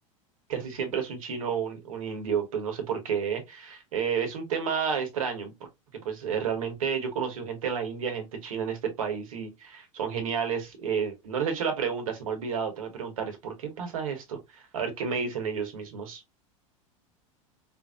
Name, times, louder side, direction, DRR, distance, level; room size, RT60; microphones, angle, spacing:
voice 1, 0.5-5.5 6.0-16.2, right 6 dB, 85° right, 1.4 m, -31 dB
4.5 x 2.7 x 2.4 m
hypercardioid pair, 100°, 17 cm